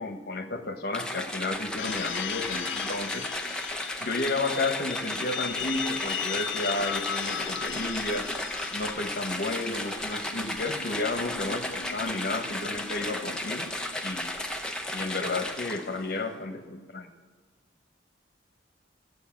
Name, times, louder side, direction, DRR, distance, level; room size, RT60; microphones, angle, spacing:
voice 1, 0.0-3.3 4.0-8.3 8.7-13.7 14.0-14.3 14.9-17.1, left 2 dB, 60° left, 6 dB, 1.1 m, -32 dB
sound 1, 0.9-16.0, left 1 dB, 5° left, 0.8 m, -34 dB
sound 2, 1.8-14.3, left 11 dB, 80° left, 0.3 m, -38 dB
14.0 x 8.1 x 5.9 m, 1.5 s
head